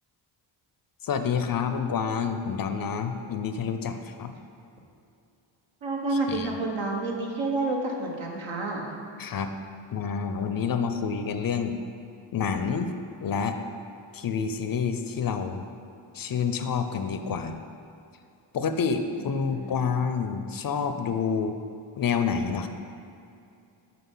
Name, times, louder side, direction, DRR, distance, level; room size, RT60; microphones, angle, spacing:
voice 1, 1.0-4.3 6.3-6.5 9.2-9.5 9.9-11.8 12.3-12.9 13.2-13.6 14.1-15.7 16.1-17.5 18.5-21.5 22.0-22.7, left 6 dB, 45° left, 8 dB, 0.6 m, -28 dB
voice 2, 5.8-8.9 19.2-19.8, right 2 dB, 70° right, 0 dB, 1.5 m, -30 dB
5.9 x 5.5 x 5.5 m, 2.6 s
cardioid pair, 70°, 48 cm